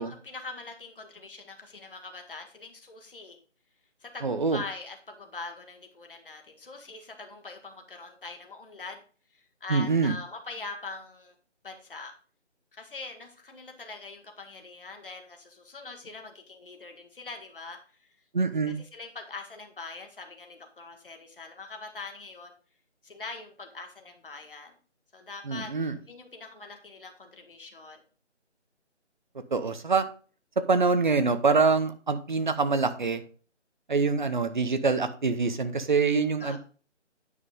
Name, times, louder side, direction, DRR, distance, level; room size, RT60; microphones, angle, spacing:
voice 1, 0.0-3.4 4.0-9.0 9.3-11.3 11.6-12.1 12.7-18.1 18.7-22.5 23.0-24.7 25.1-28.0 36.4-36.6, left 3 dB, 50° left, 4 dB, 1.7 m, -43 dB
voice 2, 4.2-4.6 9.7-10.1 18.3-18.8 25.5-25.9 29.5-30.0 30.7-33.2 33.9-36.6, right 4 dB, 40° right, 10 dB, 0.8 m, -25 dB
9.6 x 5.3 x 3.6 m, 0.39 s
figure-of-eight pair, 170°, 36 cm